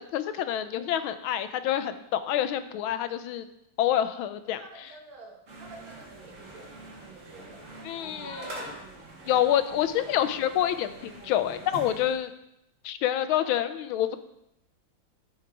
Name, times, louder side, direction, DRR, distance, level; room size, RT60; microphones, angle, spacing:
voice 1, 0.0-3.4 3.8-4.6 7.8-8.5 9.3-12.3 12.8-14.2, left 11 dB, 85° left, 12 dB, 1.4 m, -27 dB
voice 2, 4.6-7.7 8.0-8.7 13.4-13.5, right 3 dB, 85° right, 1 dB, 2.4 m, -49 dB
sound 1, 5.5-12.2, right 2 dB, 45° right, 1.5 m, -44 dB
12.5 x 4.9 x 4.7 m, 0.84 s
omnidirectional pair, 2.2 m